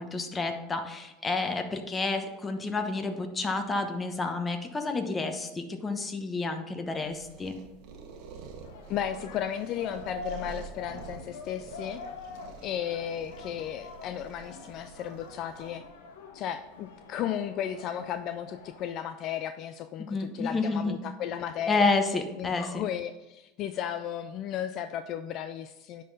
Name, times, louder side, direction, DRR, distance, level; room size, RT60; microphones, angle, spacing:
voice 1, 0.0-7.6 20.1-21.0 21.7-22.8, left 3 dB, 20° left, 6 dB, 1.0 m, -30 dB
sound 1, 7.0-15.7, right 6 dB, 65° right, 1.2 m, -48 dB
sound 2, 8.6-18.9, left 3 dB, 85° left, 1.2 m, -45 dB
voice 2, 8.9-12.0 12.6-15.8 16.3-21.9 22.4-26.0, left 9 dB, 50° left, 10 dB, 0.4 m, -34 dB
10.0 x 3.8 x 4.1 m, 1.0 s
supercardioid pair, 110°, 0 cm